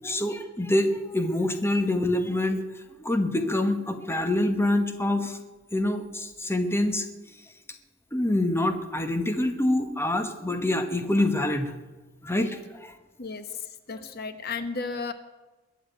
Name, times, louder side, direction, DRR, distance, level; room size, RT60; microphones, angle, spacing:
voice 1, 0.0-2.6 3.0-5.4 5.7-7.1 8.1-11.7 12.2-12.9, left 1 dB, 10° left, 7 dB, 1.2 m, -26 dB
voice 2, 13.2-15.1, left 4 dB, 50° left, 10 dB, 1.1 m, -34 dB
21.5 x 7.4 x 9.1 m, 1.2 s
head